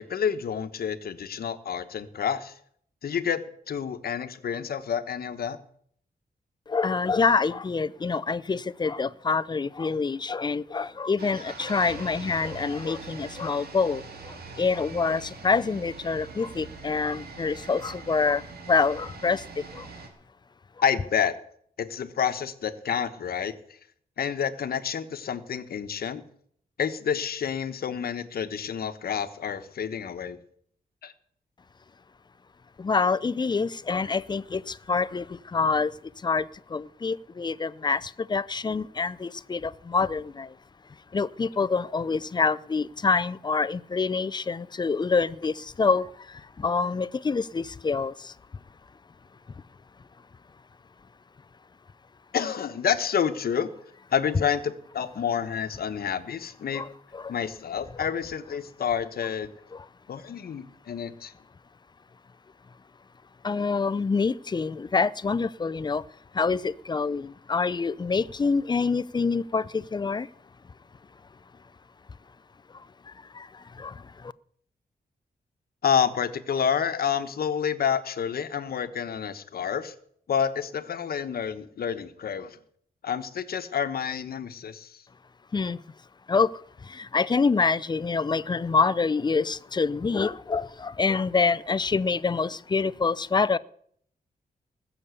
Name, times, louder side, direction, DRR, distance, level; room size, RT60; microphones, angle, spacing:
voice 1, 0.0-2.5 3.0-3.4 3.7-5.6 20.8-21.4 21.8-23.5 24.2-26.2 26.8-30.4 31.0-31.1 52.3-53.7 54.1-56.8 57.3-59.5 60.1-61.3 75.8-79.9 80.3-82.6 83.0-85.0, left 7 dB, 70° left, 1.2 m, -29 dB
voice 2, 6.7-19.9 32.8-40.6 41.1-48.3 56.7-57.4 59.7-59.9 63.4-66.0 66.3-70.3 72.7-74.3 85.5-85.8 86.3-93.6, left 4 dB, 25° left, 0.5 m, -26 dB
sound 1, 11.2-20.1, right 4 dB, 70° right, 3.1 m, -42 dB
19.5 x 7.1 x 8.3 m
wide cardioid pair, 115°, 16 cm